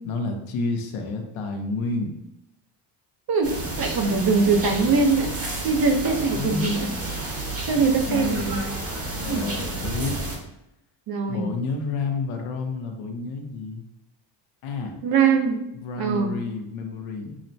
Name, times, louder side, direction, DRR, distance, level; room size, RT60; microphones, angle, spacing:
voice 1, 0.0-2.1 6.3-6.8 8.1-8.6 9.1-10.2 11.3-13.8 14.6-14.9 15.7-17.4, left 3 dB, 75° left, 3 dB, 0.8 m, -30 dB
voice 2, 3.3-5.3 5.6-6.9 7.7-8.6 9.3-9.4 11.1-11.5 15.0-15.6 16.0-16.3, right 4 dB, 45° right, 4 dB, 0.7 m, -22 dB
sound 1, 3.4-10.4, right 2 dB, 30° right, 1.0 m, -31 dB
6.0 x 2.1 x 2.7 m, 0.85 s
cardioid pair, 100°, 50 cm